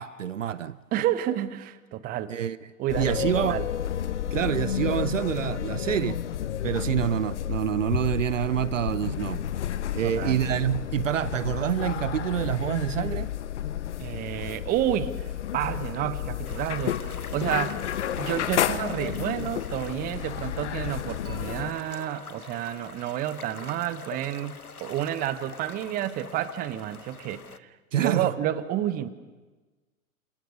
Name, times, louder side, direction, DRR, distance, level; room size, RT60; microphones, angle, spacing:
voice 1, 0.0-0.8 2.3-2.6 3.0-3.6 4.3-6.2 6.6-9.5 9.9-13.3 27.9-28.3, right 10 dB, 60° right, 0.8 m, -27 dB
voice 2, 0.9-2.3 2.8-3.7 10.0-10.4 14.0-15.2 15.5-17.8 18.2-27.4 28.0-29.1, right 12 dB, 20° right, 1.2 m, -30 dB
sound 1, 2.9-21.7, left 10 dB, 55° left, 1.3 m, -31 dB
sound 2, 16.4-27.6, left 5 dB, 90° left, 1.1 m, -44 dB
Dishes pots and pans / Chink clink, 21.2-24.4, right 3 dB, 85° right, 6.8 m, -53 dB
29.5 x 27.0 x 6.6 m
figure-of-eight pair, 115°, 43 cm